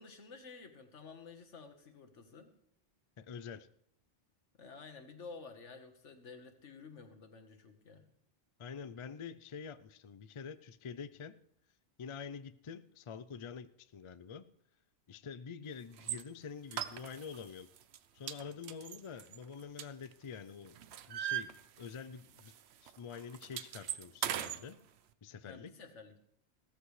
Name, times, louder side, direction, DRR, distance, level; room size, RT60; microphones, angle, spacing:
voice 1, 0.0-2.5 4.6-8.0 25.4-26.2, left 4 dB, 80° left, 5 dB, 1.7 m, -52 dB
voice 2, 3.2-3.7 8.6-11.3 12.0-14.4 15.1-17.7 18.1-20.8 21.1-22.5 22.8-24.8 25.2-25.7, left 6 dB, 50° left, 14 dB, 0.3 m, -46 dB
sound 1, 16.0-16.2 16.7-17.4 17.8-18.0 18.3-20.3 20.7-22.1 22.4-22.6 22.9-24.6, right 11 dB, 70° right, 0.9 m, -39 dB
16.0 x 13.5 x 3.2 m, 0.70 s
omnidirectional pair, 1.2 m